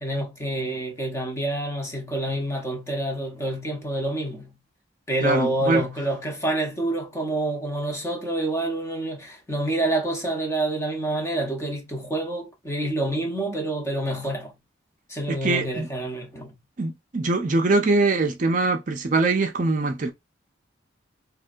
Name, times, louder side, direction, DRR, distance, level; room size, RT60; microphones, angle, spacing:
voice 1, 0.0-4.6 5.1-14.5 15.1-16.6, right 1 dB, 15° left, 0.7 m, -27 dB
voice 2, 5.2-5.8 15.3-15.9 16.8-20.1, right 3 dB, 40° right, 0.5 m, -23 dB
3.3 x 2.2 x 2.4 m
head